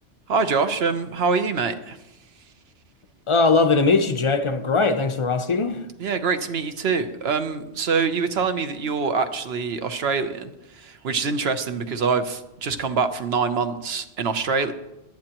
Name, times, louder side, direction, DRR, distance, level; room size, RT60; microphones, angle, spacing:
voice 1, 0.3-2.0 6.0-14.7, right 5 dB, 60° right, 1.0 m, -25 dB
voice 2, 3.3-5.8, left 4 dB, 30° left, 0.7 m, -20 dB
22.0 x 8.8 x 3.0 m
omnidirectional pair, 1.3 m